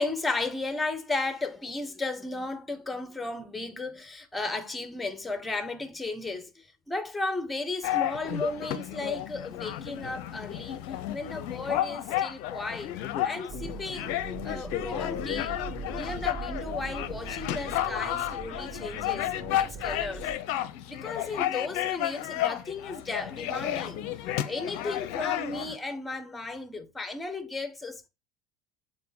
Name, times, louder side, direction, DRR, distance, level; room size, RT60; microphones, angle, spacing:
voice 1, 0.0-10.8 11.1-12.9 13.2-14.2 14.4-15.6 15.9-20.3 20.9-24.0 24.5-28.1, left 3 dB, 10° left, 1.2 m, -34 dB
sound 1, 7.8-25.7, left 12 dB, 55° left, 0.6 m, -32 dB
sound 2, 13.5-20.4, right 7 dB, 40° right, 0.6 m, -41 dB
6.9 x 4.2 x 4.7 m
figure-of-eight pair, 75°, 0 cm